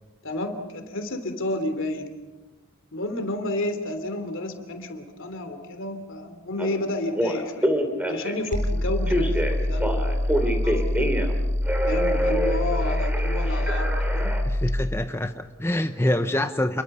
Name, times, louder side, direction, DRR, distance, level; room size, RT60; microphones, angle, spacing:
voice 1, 0.2-2.1 2.9-7.7 8.1-11.2 11.8-14.4, left 1 dB, 65° left, 7 dB, 3.1 m, -31 dB
Telephone, 6.6-6.7 7.1-8.5 9.1-11.4 11.6-14.4, equal, 5° right, 2.9 m, -26 dB
sound 1, 8.5-14.9, left 1 dB, 35° right, 3.0 m, -25 dB
voice 2, 14.4-16.8, left 1 dB, 10° left, 7 dB, 0.8 m, -25 dB
29.0 x 22.5 x 5.6 m, 1.2 s
head